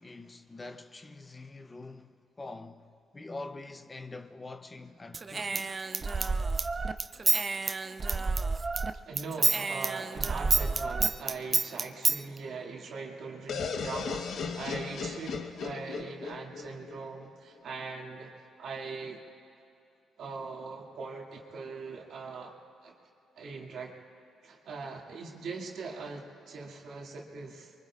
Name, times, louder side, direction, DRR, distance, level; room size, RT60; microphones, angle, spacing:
voice 1, 0.0-5.8, left 2 dB, 25° left, 0.7 m, -45 dB
Human voice / Scissors, 5.1-8.9 9.2-12.2, right 4 dB, 35° right, 0.5 m, -29 dB
voice 2, 9.0-19.2 20.2-22.6 22.8-22.9 23.4-24.0 24.4-27.7, right 4 dB, 70° right, 2.3 m, -41 dB
sound 1, 13.5-17.3, left 5 dB, 70° left, 1.1 m, -36 dB
24.5 x 23.5 x 2.5 m
cardioid pair, 90°, 0 cm